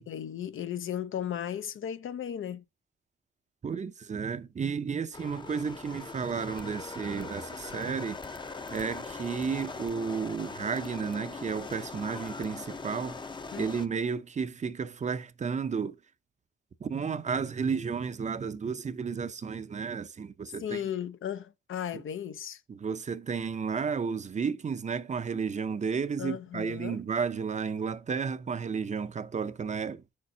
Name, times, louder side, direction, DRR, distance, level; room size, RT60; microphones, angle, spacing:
voice 1, 0.0-2.6 13.5-13.7 20.6-22.6 26.2-27.0, left 9 dB, 75° left, 0.7 m, -35 dB
voice 2, 3.6-8.2 8.7-13.2 13.6-16.0 16.8-20.8 22.7-30.0, right 6 dB, 35° right, 0.6 m, -32 dB
sound 1, 5.1-13.9, left 4 dB, 20° left, 0.6 m, -41 dB
8.1 x 6.5 x 2.7 m
wide cardioid pair, 135°, 21 cm